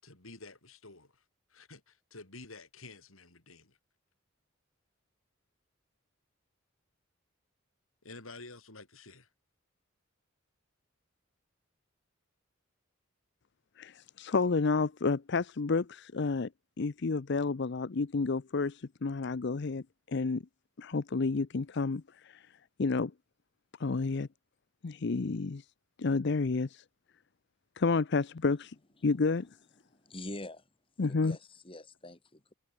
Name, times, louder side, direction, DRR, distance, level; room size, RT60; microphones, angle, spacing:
voice 1, 0.0-1.2 1.5-3.8 8.0-9.3, left 3 dB, 85° left, 6.5 m, -50 dB
voice 2, 13.8-16.5 16.8-20.4 20.8-22.5 22.8-23.1 23.8-24.3 24.8-25.7 26.0-26.8 27.8-28.7 29.0-29.5 31.0-31.4, left 4 dB, 55° left, 0.6 m, -30 dB
voice 3, 29.9-30.7 31.1-32.5, left 1 dB, 25° left, 3.6 m, -45 dB
head